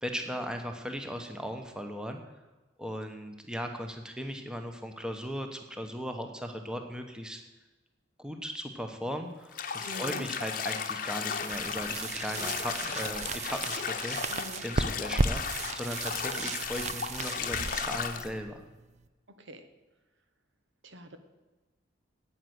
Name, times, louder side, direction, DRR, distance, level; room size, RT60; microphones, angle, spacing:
voice 1, 0.0-2.2 2.8-7.4 8.2-18.6, equal, 5° right, 5 dB, 1.0 m, -38 dB
Bathtub (filling or washing), 9.5-18.3, left 6 dB, 45° left, 0.9 m, -35 dB
voice 2, 9.8-10.3 14.3-14.6 19.4-19.6 20.8-21.2, equal, 80° right, 8 dB, 1.4 m, -43 dB
sound 1, 11.3-19.1, right 3 dB, 35° right, 0.5 m, -35 dB
9.8 x 9.0 x 8.1 m, 1.1 s
head